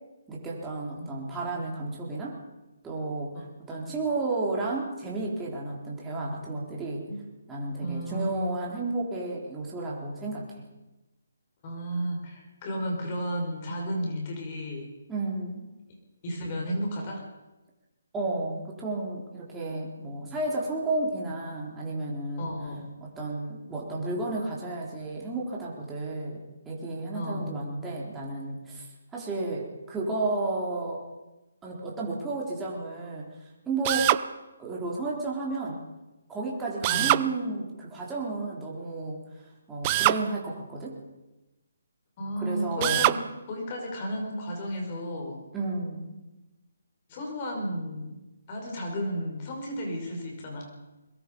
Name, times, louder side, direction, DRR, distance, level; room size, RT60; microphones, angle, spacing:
voice 1, 0.3-2.4 2.8-7.0 7.5-10.6 15.1-15.7 18.1-22.5 23.0-28.9 29.1-31.0 31.6-33.3 33.7-34.2 34.6-35.8 36.3-39.2 39.7-41.0 42.4-43.1 45.5-46.2, right 2 dB, 10° right, -4 dB, 3.9 m, -32 dB
voice 2, 7.8-8.6 11.6-14.9 16.2-17.2 22.4-22.9 27.1-27.6 36.9-37.1 42.2-45.4 47.1-48.2 48.5-50.7, equal, 30° left, 1 dB, 5.6 m, -33 dB
Drill, 33.8-34.3 36.8-37.3 39.8-40.2 42.8-43.2, right 16 dB, 25° right, 0.6 m, -23 dB
22.0 x 21.5 x 5.5 m, 1.0 s
hypercardioid pair, 160°, 0 cm